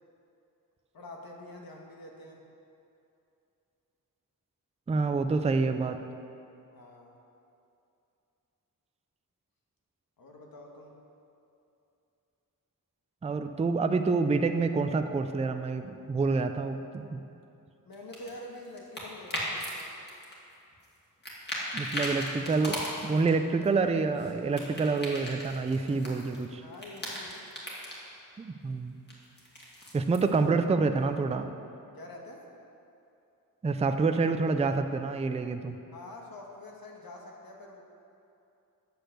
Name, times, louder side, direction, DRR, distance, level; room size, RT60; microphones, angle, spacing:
voice 1, 0.9-2.4 6.7-7.2 10.2-10.9 17.8-19.7 26.6-27.5 31.9-32.4 35.9-37.8, left 1 dB, 75° left, 0 dB, 1.5 m, -46 dB
voice 2, 4.9-6.0 13.2-17.2 21.7-26.6 28.4-29.0 29.9-31.5 33.6-35.8, right 4 dB, 20° right, 7 dB, 0.4 m, -27 dB
sound 1, 17.9-19.8 20.1-21.0 21.2-23.3 23.6-26.4 26.7-28.0 29.1-30.3, equal, 30° left, 1.9 m, -37 dB
8.7 x 6.5 x 7.8 m, 2.7 s
wide cardioid pair, 165°, 35 cm